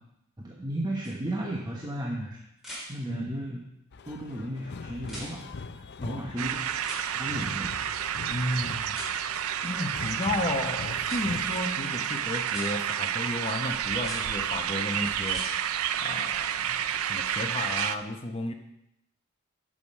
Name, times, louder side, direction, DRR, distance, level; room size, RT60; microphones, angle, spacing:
voice 1, 0.4-2.4 2.9-3.6 4.1-6.6 7.1-7.7, right 1 dB, 20° right, -2 dB, 1.1 m, -34 dB
sound 1, 1.0-1.1 2.6-2.9 5.0-5.3 6.8-7.0 8.9-9.1 11.0-11.2 12.4-12.7 13.9-14.2 15.2-15.5 17.6-17.7, equal, ahead, 3.9 m, -40 dB
voice 2, 3.0-3.3 6.0-6.2 8.3-9.0 9.6-18.5, left 1 dB, 30° left, 5 dB, 0.9 m, -33 dB
sound 2, 3.9-11.8, left 4 dB, 55° left, 0.5 m, -43 dB
sound 3, 6.4-18.0, right 9 dB, 85° right, 0.5 m, -30 dB
10.5 x 6.4 x 5.4 m, 0.81 s
head